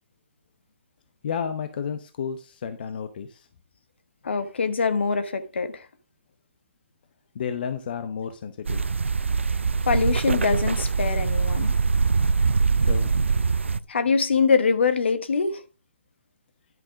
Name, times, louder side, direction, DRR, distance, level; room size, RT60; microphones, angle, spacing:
voice 1, 1.2-3.5 7.3-8.8 12.8-13.2, left 7 dB, 50° left, 0.9 m, -32 dB
voice 2, 4.2-5.9 9.8-11.7 13.9-15.6, left 5 dB, 65° left, 1.3 m, -23 dB
sound 1, 8.7-13.8, right 4 dB, 80° right, 0.5 m, -23 dB
11.0 x 6.0 x 4.9 m
figure-of-eight pair, 135°, 6 cm